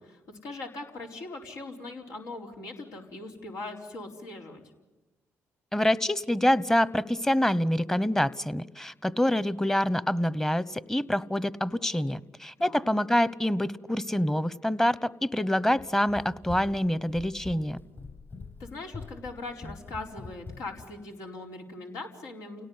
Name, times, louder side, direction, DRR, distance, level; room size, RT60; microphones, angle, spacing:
voice 1, 0.0-4.6 12.6-12.8 18.6-22.7, left 2 dB, 85° left, 1 dB, 4.5 m, -40 dB
voice 2, 5.7-17.8, left 1 dB, 10° left, 18 dB, 1.0 m, -26 dB
Run, 15.7-20.9, left 4 dB, 40° left, 7.3 m, -44 dB
29.5 x 18.0 x 9.7 m, 1.1 s
cardioid pair, 70°, 6 cm